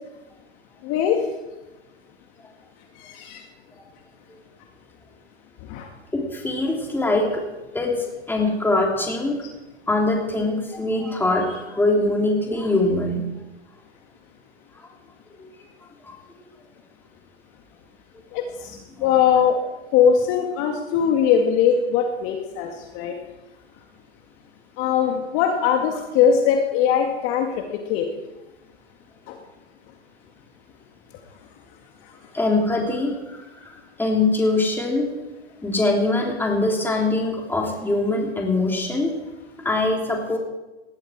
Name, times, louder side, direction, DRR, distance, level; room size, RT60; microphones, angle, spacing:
voice 1, 0.8-1.2 3.0-3.4 5.7-5.9 18.3-19.6 19.9-22.7 22.9-23.1 24.8-27.6 27.9-28.1 29.3-29.4, left 8 dB, 40° left, 3 dB, 1.9 m, -20 dB
voice 2, 6.1-7.4 7.7-9.4 9.9-13.2 16.0-16.2 19.0-19.1 32.3-33.4 34.0-35.1 35.6-39.1 39.6-40.4, left 2 dB, 5° left, 0 dB, 3.4 m, -22 dB
19.5 x 13.0 x 4.7 m, 1.1 s
hypercardioid pair, 125°, 34 cm